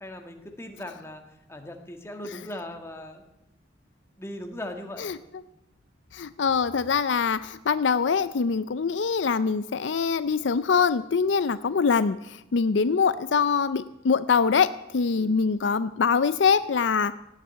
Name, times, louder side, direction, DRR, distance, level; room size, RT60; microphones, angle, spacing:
voice 1, 0.0-1.2 1.5-3.2 4.2-5.1 11.6-11.8 15.1-15.4, left 1 dB, 15° left, 4 dB, 1.6 m, -39 dB
voice 2, 6.1-14.7 14.9-17.1, left 5 dB, 65° left, 14 dB, 0.5 m, -24 dB
17.0 x 7.4 x 9.2 m, 0.90 s
head